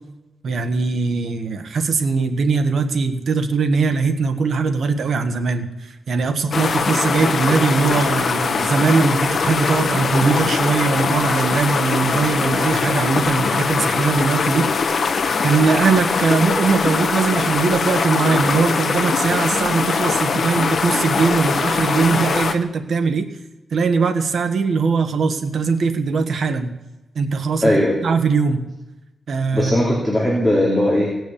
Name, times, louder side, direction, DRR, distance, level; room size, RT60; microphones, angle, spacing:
voice 1, 0.4-15.1 15.4-23.3 23.7-26.7 27.1-27.7 28.0-28.6 29.3-29.9, right 4 dB, 60° right, 7 dB, 1.4 m, -20 dB
sound 1, 6.5-22.5, left 5 dB, 50° left, 1.1 m, -21 dB
voice 2, 27.6-27.9 29.5-31.1, left 1 dB, 5° right, -4 dB, 3.1 m, -18 dB
17.5 x 6.4 x 8.6 m, 1.0 s
wide cardioid pair, 130°, 0 cm